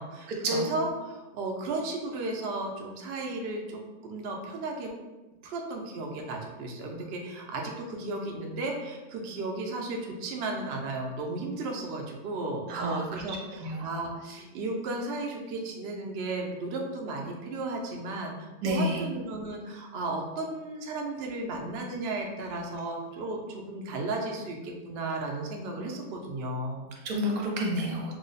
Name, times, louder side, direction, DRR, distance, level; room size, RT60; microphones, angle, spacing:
voice 1, 0.0-4.9 5.4-26.9, right 2 dB, 85° right, 1 dB, 0.5 m, -34 dB
voice 2, 12.7-14.0 18.6-19.0 27.0-28.1, equal, 70° right, 0 dB, 1.0 m, -30 dB
3.0 x 2.0 x 3.9 m, 1.1 s
omnidirectional pair, 1.7 m